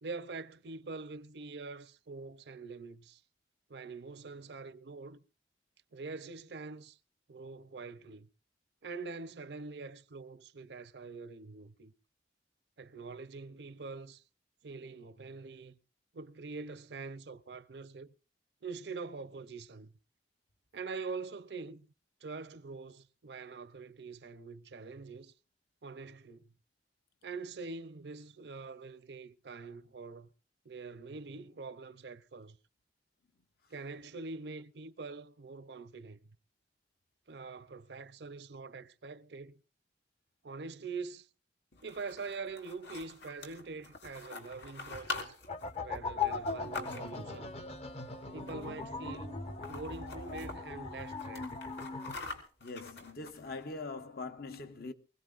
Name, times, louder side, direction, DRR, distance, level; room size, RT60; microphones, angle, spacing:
voice 1, 0.0-3.2 3.7-5.2 5.9-7.0 7.3-8.3 8.8-11.9 12.8-14.2 14.6-15.8 16.1-18.1 18.6-19.9 20.7-21.9 22.2-25.3 25.8-26.5 27.2-30.3 30.6-32.6 33.7-36.3 37.3-39.6 40.4-41.3 41.8-45.4 45.8-47.6 48.3-51.6, right 4 dB, 70° right, 0.6 m, -44 dB
sound 1, 41.7-47.4 48.4-48.9 49.1-49.2 49.5-50.6 51.0-53.6, left 3 dB, 75° left, 3.5 m, -45 dB
sound 2, 45.5-52.1, left 4 dB, 35° left, 0.9 m, -39 dB
voice 2, 52.6-54.9, left 3 dB, 60° left, 1.1 m, -42 dB
23.5 x 17.0 x 2.5 m
head